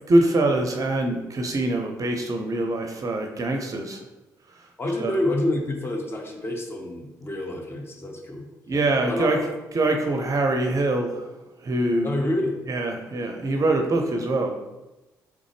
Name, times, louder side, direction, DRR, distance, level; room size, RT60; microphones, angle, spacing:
voice 1, 0.1-4.0 5.0-5.1 8.7-9.4 9.7-11.3 11.6-12.1 12.7-14.5, right 2 dB, 40° right, 3 dB, 0.5 m, -23 dB
voice 2, 4.8-8.5 9.1-9.5 12.0-12.6, left 1 dB, 25° left, 1 dB, 0.8 m, -28 dB
3.7 x 3.3 x 3.3 m, 1.0 s
figure-of-eight pair, 40°, 9 cm